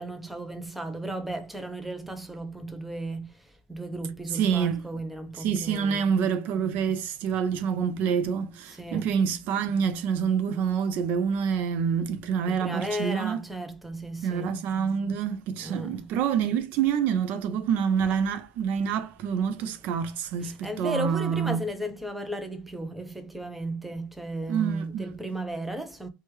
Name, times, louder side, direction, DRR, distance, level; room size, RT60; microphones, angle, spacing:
voice 1, 0.0-6.1 8.7-9.1 12.5-14.6 15.6-16.1 20.4-26.1, right 1 dB, 5° right, 0.5 m, -35 dB
voice 2, 4.3-4.8 5.4-13.4 14.2-21.6 24.5-25.1, right 7 dB, 55° right, 0.4 m, -27 dB
3.1 x 2.2 x 2.9 m
cardioid pair, 145°, 3 cm